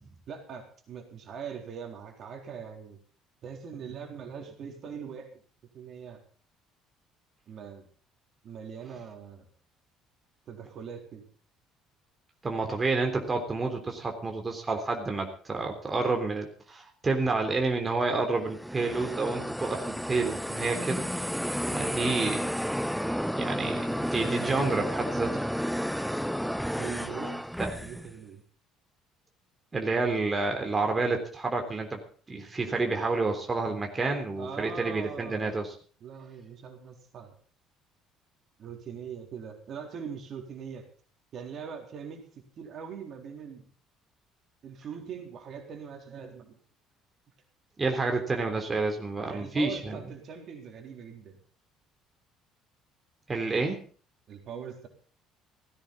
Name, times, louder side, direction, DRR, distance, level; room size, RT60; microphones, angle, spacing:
voice 1, 0.3-3.0 3.4-5.3 5.7-6.2 7.5-7.9 8.4-9.5 10.5-11.2 26.8-27.4 27.7-28.4 34.4-35.6 36.0-37.3 38.6-40.8 41.3-42.3 42.6-43.7 44.6-46.6 49.2-51.4 54.3-54.9, right 7 dB, 50° right, 3 dB, 3.7 m, -41 dB
voice 2, 12.4-21.0 21.7-22.4 23.4-25.4 27.6-27.7 29.7-32.0 32.3-35.7 47.8-50.0 53.3-53.8, right 3 dB, 25° right, 3 dB, 3.4 m, -29 dB
sound 1, 18.4-28.1, equal, ahead, 0.6 m, -32 dB
17.0 x 16.0 x 4.1 m, 0.43 s
figure-of-eight pair, 55°, 0 cm